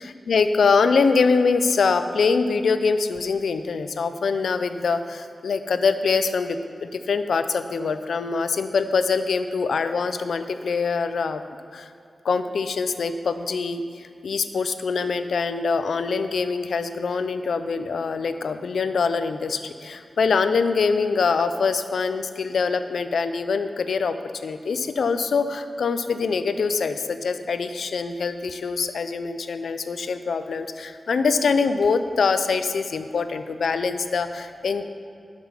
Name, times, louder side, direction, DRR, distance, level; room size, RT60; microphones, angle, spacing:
voice 1, 0.0-11.4 11.7-11.9 12.2-24.1 24.4-34.8, left 5 dB, 80° left, 10 dB, 0.5 m, -24 dB
12.0 x 6.1 x 5.6 m, 2.5 s
wide cardioid pair, 160°, 0 cm